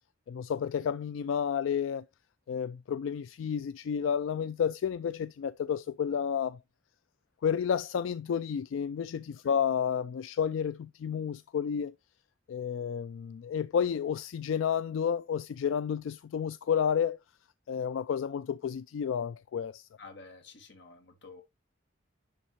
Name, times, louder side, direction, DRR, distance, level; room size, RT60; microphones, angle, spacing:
voice 1, 0.3-2.0 2.5-6.6 7.4-11.9 12.5-17.2 17.7-19.9, left 7 dB, 80° left, 0.3 m, -31 dB
voice 2, 20.0-21.4, left 4 dB, 60° left, 1.8 m, -50 dB
10.5 x 3.7 x 3.0 m
head